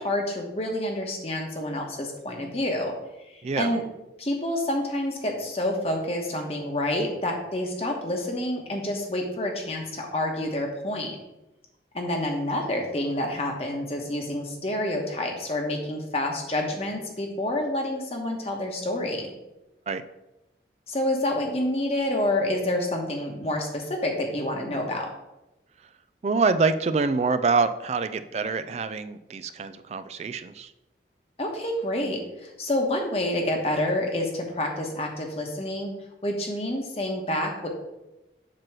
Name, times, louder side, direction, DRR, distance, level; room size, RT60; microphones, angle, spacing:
voice 1, 0.0-2.9 3.3-3.8 4.2-11.2 11.9-19.3 20.9-25.1 31.4-35.9 36.2-37.7, left 1 dB, 35° left, 2 dB, 1.2 m, -28 dB
voice 2, 3.4-3.8 19.9-20.0 26.2-30.7, right 4 dB, 35° right, 11 dB, 0.3 m, -25 dB
7.6 x 3.0 x 6.1 m, 0.96 s
head